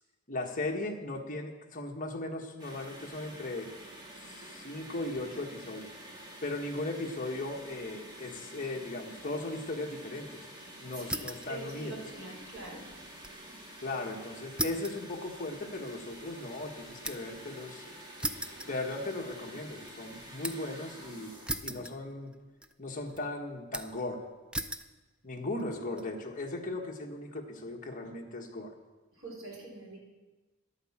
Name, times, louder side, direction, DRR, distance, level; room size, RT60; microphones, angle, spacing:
voice 1, 0.3-3.7 4.3-5.9 6.4-10.4 10.8-12.0 13.8-17.8 18.6-21.3 21.6-22.3 22.8-24.2 25.2-28.7, left 2 dB, 40° left, 1 dB, 1.5 m, -37 dB
sound 1, 2.6-21.9, right 1 dB, 20° right, 2.4 m, -49 dB
voice 2, 10.9-12.8 29.2-30.0, right 2 dB, 65° right, -3 dB, 4.7 m, -44 dB
sound 2, 11.0-11.5 11.9-13.4 13.7-13.8 14.6-17.4 18.2-19.3 19.7-20.7 21.5-22.4 22.6-23.2 23.7-24.1 24.5-24.9 25.6-26.0, right 1 dB, 5° right, 0.3 m, -38 dB
11.0 x 8.9 x 7.3 m, 1.2 s
head